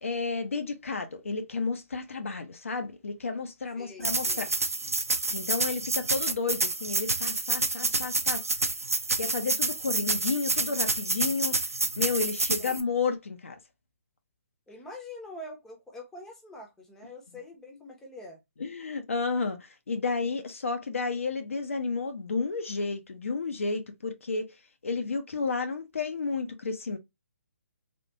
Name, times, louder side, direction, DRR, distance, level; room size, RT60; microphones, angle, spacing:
voice 1, 0.0-4.5 5.3-8.4 9.2-11.6 12.0-13.6 18.6-24.5 24.8-27.0, left 4 dB, 65° left, 0.7 m, -31 dB
voice 2, 3.8-4.5 12.6-12.8 14.7-18.4, left 1 dB, 5° left, 0.8 m, -45 dB
sound 1, 4.0-12.8, right 3 dB, 80° right, 0.5 m, -28 dB
3.5 x 2.5 x 2.5 m
figure-of-eight pair, 140°, 8 cm